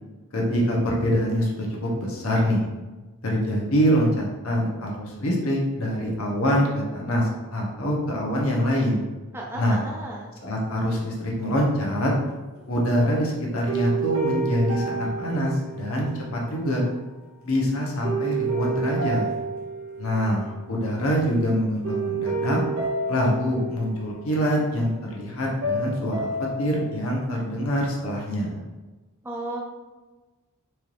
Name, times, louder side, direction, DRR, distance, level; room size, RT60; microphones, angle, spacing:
voice 1, 0.3-2.7 3.2-6.7 6.9-9.0 9.5-9.8 10.4-12.1 12.7-16.8 17.4-19.3 20.0-22.6 23.1-26.3 26.6-28.6, equal, 75° left, -2 dB, 0.9 m, -24 dB
voice 2, 9.3-10.3 29.2-29.6, right 1 dB, 10° right, -2 dB, 0.5 m, -34 dB
sound 1, 12.6-13.2 13.7-16.3 18.0-20.6 20.9-21.3 21.8-24.6 25.6-27.1, right 3 dB, 70° right, 0.8 m, -30 dB
4.4 x 3.2 x 2.5 m, 1.2 s
head